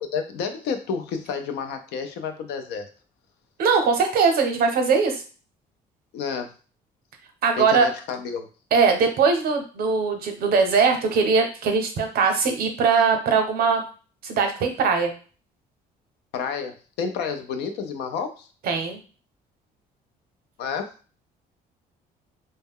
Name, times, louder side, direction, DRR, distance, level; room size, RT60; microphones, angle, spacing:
voice 1, 0.0-2.9 6.1-6.5 7.6-8.5 16.3-18.5 20.6-20.9, left 6 dB, 80° left, 7 dB, 0.5 m, -30 dB
voice 2, 3.6-5.2 7.4-7.9 8.7-13.8 14.2-15.1 18.6-19.0, right 5 dB, 60° right, 5 dB, 0.6 m, -21 dB
2.2 x 2.0 x 3.5 m, 0.38 s
cardioid pair, 110°, 17 cm